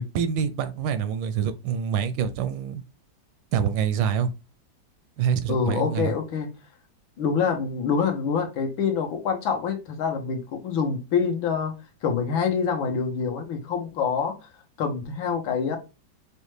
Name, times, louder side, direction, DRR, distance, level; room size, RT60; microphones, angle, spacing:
voice 1, 0.0-2.8 3.5-4.3 5.2-6.1, right 7 dB, 80° right, 1.3 m, -26 dB
voice 2, 5.5-6.5 7.2-11.7 12.0-14.5 14.8-15.8, left 6 dB, 90° left, 1.6 m, -26 dB
5.3 x 2.2 x 3.1 m
omnidirectional pair, 2.1 m